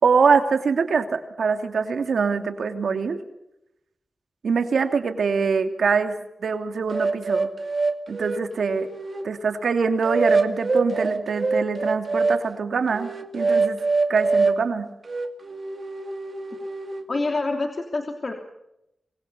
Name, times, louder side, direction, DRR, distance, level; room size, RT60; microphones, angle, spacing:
voice 1, 0.0-3.2 4.4-6.1 6.4-7.5 8.1-8.9 9.2-13.8 14.1-14.9, right 5 dB, 80° right, 7 dB, 2.8 m, -23 dB
sound 1, 6.9-9.3 10.0-12.4 12.9-14.6 15.1-17.1, right 3 dB, 50° right, 2.2 m, -25 dB
voice 2, 17.1-18.3, left 3 dB, 45° left, 4 dB, 3.1 m, -26 dB
26.0 x 21.5 x 7.1 m, 0.84 s
wide cardioid pair, 80°, 0 cm